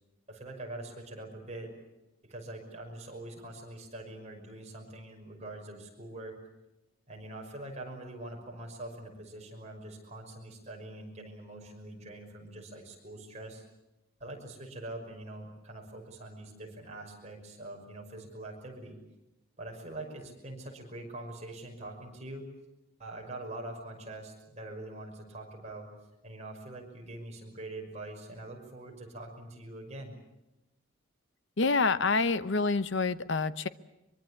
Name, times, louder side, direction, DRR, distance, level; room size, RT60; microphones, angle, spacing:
voice 1, 0.3-1.7 2.2-6.4 7.1-13.6 14.2-19.0 19.6-22.5 23.0-25.9 26.2-30.1, right 2 dB, 30° right, 1 dB, 5.8 m, -44 dB
voice 2, 31.6-33.7, left 4 dB, 55° left, 14 dB, 0.9 m, -27 dB
23.5 x 23.5 x 8.5 m, 0.96 s
head